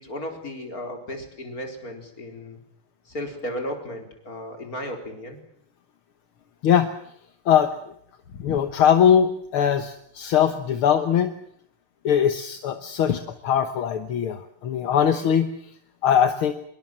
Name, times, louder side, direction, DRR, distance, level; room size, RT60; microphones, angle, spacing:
voice 1, 0.0-2.6 3.0-5.4, left 1 dB, 40° left, 4 dB, 4.8 m, -34 dB
voice 2, 8.4-11.3 12.0-15.5 16.0-16.5, left 8 dB, 75° left, 8 dB, 2.1 m, -21 dB
25.0 x 22.0 x 7.5 m, 0.69 s
omnidirectional pair, 2.4 m